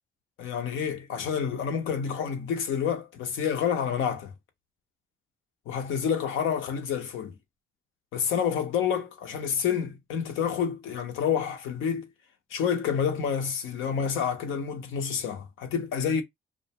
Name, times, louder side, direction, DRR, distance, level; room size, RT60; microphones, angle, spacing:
voice 1, 0.4-4.3 5.7-7.3 8.1-12.1 12.5-16.2, left 7 dB, 85° left, 0.7 m, -28 dB
2.4 x 2.1 x 2.8 m
cardioid pair, 90°, 20 cm